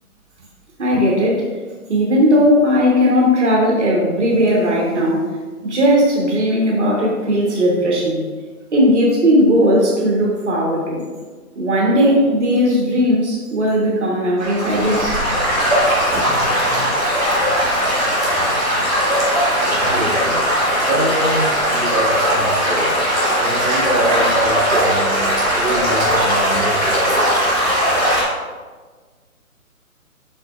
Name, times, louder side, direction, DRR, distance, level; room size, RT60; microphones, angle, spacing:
voice 1, 0.8-1.5 1.9-5.3 5.6-8.3 8.7-11.0 11.5-15.2, equal, 50° right, -3 dB, 1.5 m, -17 dB
Stream / Gurgling / Trickle dribble, 14.4-28.2, equal, 10° left, 1.9 m, -18 dB
voice 2, 19.6-20.5 20.8-23.0 23.4-25.3 25.5-27.5, right 1 dB, 30° right, -8 dB, 1.6 m, -25 dB
8.6 x 5.4 x 2.5 m, 1.4 s
hypercardioid pair, 165°, 44 cm